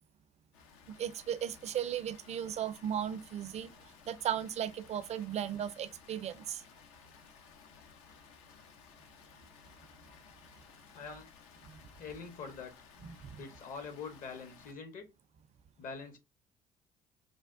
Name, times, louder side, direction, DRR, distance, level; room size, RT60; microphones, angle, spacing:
Water, 0.5-14.7, left 6 dB, 75° left, 0.5 m, -58 dB
voice 1, 1.0-3.7 4.1-6.6 13.0-13.3, right 9 dB, 40° right, 0.4 m, -36 dB
voice 2, 10.9-11.3 12.0-12.7 13.4-15.1 15.8-16.2, left 5 dB, 50° left, 0.9 m, -44 dB
3.3 x 2.1 x 2.4 m
hypercardioid pair, 55°, 17 cm